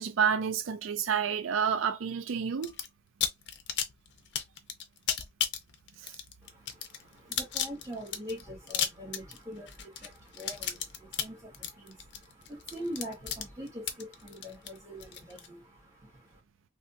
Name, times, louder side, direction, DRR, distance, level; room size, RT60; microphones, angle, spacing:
voice 1, 0.0-2.7 6.0-6.1, right 7 dB, 80° right, 0.4 m, -29 dB
sound 1, 2.6-2.9 3.2-15.5, left 8 dB, 60° left, 0.6 m, -34 dB
voice 2, 6.4-16.4, equal, 15° right, 1.7 m, -43 dB
3.4 x 2.7 x 2.6 m
head